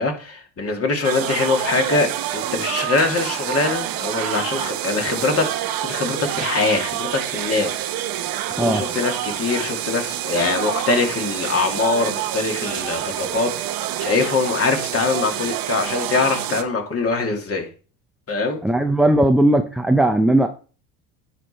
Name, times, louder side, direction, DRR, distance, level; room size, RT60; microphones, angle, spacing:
voice 1, 0.0-5.5 5.8-7.8 8.6-17.7 18.3-18.6, left 3 dB, 30° left, 2 dB, 2.5 m, -23 dB
sound 1, 1.0-16.6, right 12 dB, 50° right, 1.0 m, -27 dB
voice 2, 18.6-20.5, right 1 dB, ahead, 5 dB, 0.7 m, -17 dB
10.0 x 5.0 x 4.4 m, 0.37 s
hypercardioid pair, 85°, 46 cm